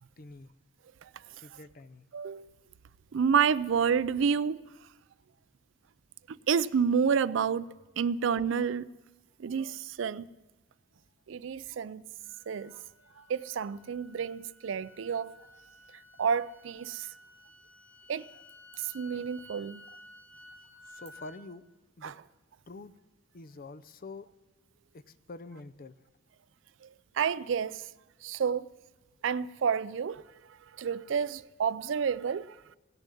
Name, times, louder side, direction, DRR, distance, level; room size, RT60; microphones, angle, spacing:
voice 1, 0.2-0.5 1.3-2.1 20.9-21.6 22.0-22.1 22.7-22.9 23.3-24.3 24.9-26.0, left 3 dB, 45° left, 0.6 m, -46 dB
voice 2, 2.1-2.5 3.1-4.6 6.3-7.7 8.0-8.9 9.4-10.3 11.3-12.0 12.5-12.8 13.2-15.4 16.2-17.1 18.1-18.3 18.8-19.8 22.0-22.1 26.8-27.9 28.2-28.7 29.2-32.6, right 6 dB, 65° right, 0.4 m, -29 dB
sound 1, 12.2-21.4, left 1 dB, 10° left, 1.1 m, -55 dB
17.5 x 6.9 x 9.8 m
head